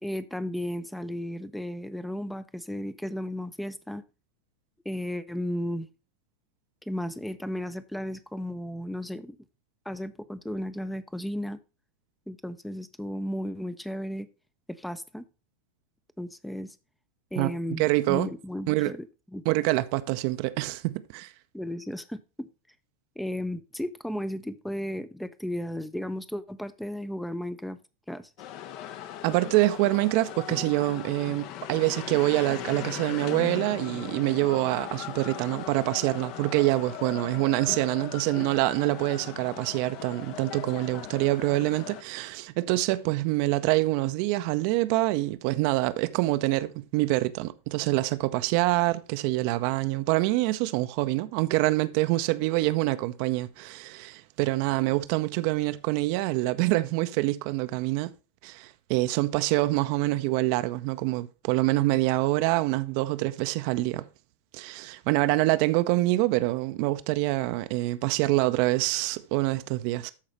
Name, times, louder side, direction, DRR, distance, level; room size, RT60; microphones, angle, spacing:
voice 1, 0.0-4.0 4.8-5.9 6.9-9.4 9.9-11.6 12.3-14.3 14.7-15.2 16.2-16.7 17.3-19.1 19.3-19.4 21.5-22.5 23.2-27.8 28.1-28.3, equal, 5° left, 0.6 m, -34 dB
voice 2, 17.8-18.3 18.7-18.9 19.5-21.3 29.2-58.1 58.4-64.0 64.5-70.1, right 18 dB, 45° right, 0.6 m, -26 dB
sound 1, 28.4-42.0, left 11 dB, 40° left, 0.8 m, -39 dB
13.0 x 4.9 x 3.1 m
figure-of-eight pair, 90°, 0 cm